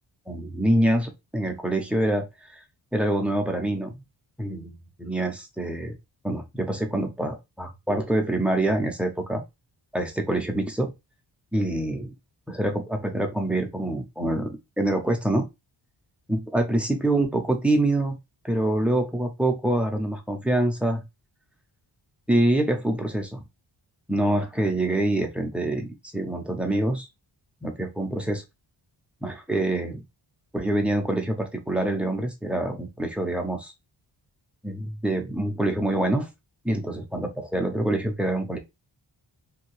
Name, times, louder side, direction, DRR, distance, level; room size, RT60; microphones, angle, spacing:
voice 1, 0.3-2.6 2.9-4.0 4.4-5.9 6.2-9.4 9.9-10.9 11.5-12.1 12.5-15.5 16.3-18.2 18.4-21.0 22.3-23.4 24.1-25.9 26.1-27.1 27.6-28.4 29.2-30.0 30.5-33.7 34.6-36.3 36.6-38.6, right 1 dB, 5° right, 3 dB, 0.5 m, -25 dB
2.7 x 2.7 x 2.9 m, 0.22 s
wide cardioid pair, 150°, 45 cm